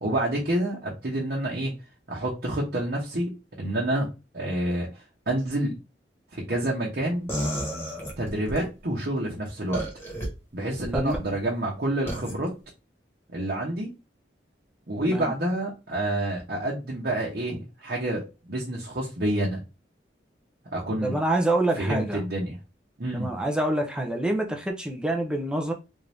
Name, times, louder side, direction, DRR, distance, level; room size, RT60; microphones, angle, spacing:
voice 1, 0.0-1.7 2.1-3.3 3.6-4.1 4.3-5.7 6.3-7.3 8.2-9.8 10.5-12.5 13.3-13.9 14.9-19.6 20.7-21.1 21.8-22.6 23.0-23.3, right 1 dB, 55° right, 1.0 m, -28 dB
sound 1, 7.3-8.6 9.7-10.3 10.8-11.2 12.1-12.3, equal, 10° left, 1.3 m, -31 dB
voice 2, 15.0-15.3 20.9-22.2 23.1-25.7, right 1 dB, 5° right, 0.6 m, -26 dB
3.7 x 2.7 x 3.4 m
head